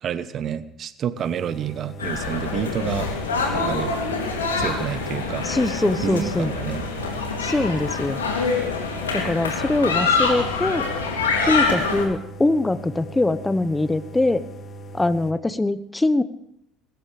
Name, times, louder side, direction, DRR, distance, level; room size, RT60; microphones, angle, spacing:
voice 1, 0.0-3.1 3.5-3.9 4.6-5.4 6.0-6.9, right 9 dB, 50° right, 15 dB, 1.0 m, -29 dB
sound 1, 1.2-15.3, right 2 dB, 40° left, 2.1 m, -40 dB
sound 2, 2.0-12.1, left 4 dB, 85° left, 2.7 m, -25 dB
voice 2, 5.4-6.5 7.4-8.2 9.1-10.9 11.4-14.4 14.9-16.2, left 2 dB, 15° left, 13 dB, 1.1 m, -22 dB
20.5 x 18.5 x 3.4 m, 0.78 s
hypercardioid pair, 60°, 0 cm